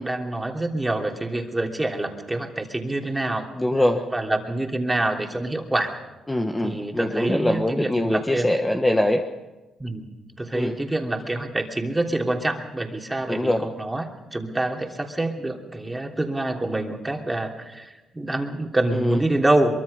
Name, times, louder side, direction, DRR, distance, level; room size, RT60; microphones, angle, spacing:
voice 1, 0.0-3.5 4.1-5.9 6.6-8.5 9.8-10.0 10.4-19.8, right 2 dB, 15° right, 2 dB, 3.0 m, -26 dB
voice 2, 3.6-4.0 6.3-9.2 10.5-10.7 13.3-13.6 18.9-19.2, left 1 dB, 10° left, 4 dB, 1.4 m, -23 dB
23.0 x 23.0 x 5.5 m, 1.1 s
cardioid pair, 90°, 0 cm